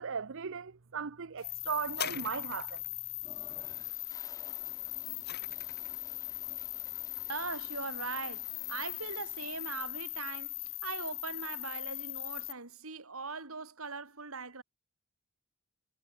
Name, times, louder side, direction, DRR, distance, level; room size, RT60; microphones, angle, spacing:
voice 1, 0.0-2.8, right 6 dB, 65° right, 0.8 m, -37 dB
sound 1, 1.4-12.5, left 20 dB, 70° left, 1.1 m, -40 dB
sound 2, 1.9-2.9 4.7-6.0 6.8-6.9, left 9 dB, 50° left, 2.7 m, -42 dB
Toilet flush, 3.2-10.4, left 3 dB, 15° left, 1.7 m, -57 dB
voice 2, 7.3-14.6, right 4 dB, 90° right, 3.7 m, -40 dB
head